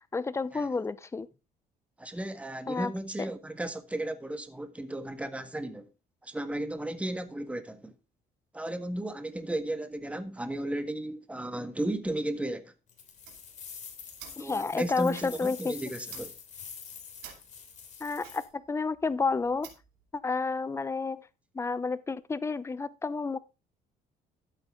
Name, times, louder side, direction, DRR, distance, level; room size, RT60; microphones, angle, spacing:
voice 1, 0.1-1.3 2.7-2.9 14.4-15.7 18.0-19.7 20.1-21.3 21.5-23.4, left 4 dB, 15° left, 0.7 m, -30 dB
voice 2, 2.0-5.9 6.2-7.9 8.5-12.7 14.4-16.3, right 1 dB, 5° right, 1.5 m, -34 dB
sound 1, 12.9-18.5, left 6 dB, 45° left, 3.1 m, -46 dB
sound 2, 13.1-20.0, right 9 dB, 85° right, 2.7 m, -52 dB
12.5 x 8.1 x 3.7 m
cardioid pair, 110°, 17 cm